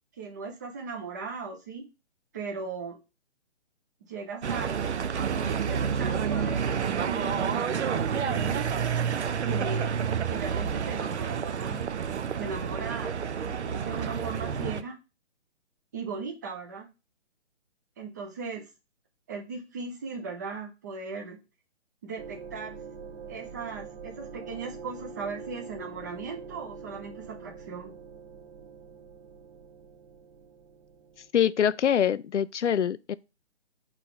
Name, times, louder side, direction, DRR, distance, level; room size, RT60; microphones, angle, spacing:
voice 1, 0.2-1.8 2.3-3.0 4.0-4.7 5.1-8.7 9.4-9.9 10.2-11.8 12.4-13.1 13.4-15.0 15.9-16.9 18.0-18.7 19.3-21.4 22.0-22.7 23.3-28.0, right 4 dB, 15° right, 0.5 m, -38 dB
sound 1, 4.4-14.8, right 7 dB, 75° right, 0.7 m, -29 dB
sound 2, 22.2-31.3, right 5 dB, 50° right, 1.0 m, -44 dB
voice 2, 31.3-33.1, left 9 dB, 90° left, 0.5 m, -24 dB
4.5 x 4.0 x 5.6 m
hypercardioid pair, 145°, 34 cm